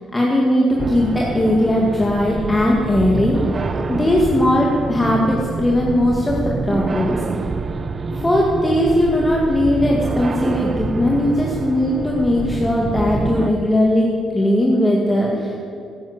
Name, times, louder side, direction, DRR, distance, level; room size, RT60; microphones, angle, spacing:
voice 1, 0.1-3.4 3.9-7.2 8.1-14.1 14.3-15.5, left 1 dB, 15° left, -2 dB, 2.1 m, -18 dB
sound 1, 0.8-13.5, right 4 dB, 35° right, 0.8 m, -26 dB
13.0 x 10.5 x 8.1 m, 2.5 s
cardioid pair, 90°, 0 cm